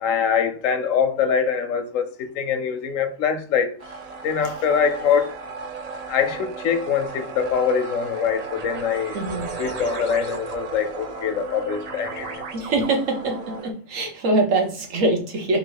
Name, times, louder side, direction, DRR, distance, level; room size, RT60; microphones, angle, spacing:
voice 1, 0.0-3.7 4.2-5.3 6.1-9.2 9.6-12.3, left 7 dB, 90° left, 1.1 m, -23 dB
sound 1, 3.8-13.7, right 4 dB, 45° right, 0.5 m, -35 dB
voice 2, 9.1-9.5 12.5-15.6, right 2 dB, 80° right, 1.4 m, -23 dB
3.6 x 2.8 x 4.6 m
omnidirectional pair, 1.3 m